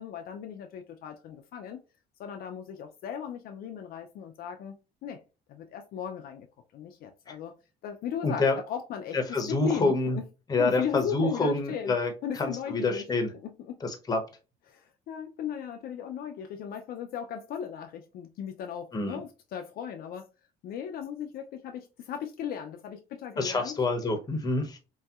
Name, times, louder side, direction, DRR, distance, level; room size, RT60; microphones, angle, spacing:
voice 1, 0.0-1.8 2.2-5.2 5.5-6.5 6.7-7.5 7.8-9.2 9.5-10.3 10.6-11.9 12.2-13.0 13.4-13.8 14.7-20.3 20.6-23.8, left 8 dB, 60° left, 0.4 m, -37 dB
voice 2, 8.2-8.6 9.1-10.2 10.5-13.3 13.8-14.2 18.9-19.2 23.4-24.8, left 3 dB, 20° left, 0.7 m, -27 dB
3.1 x 2.7 x 2.3 m
cardioid pair, 110°, 17 cm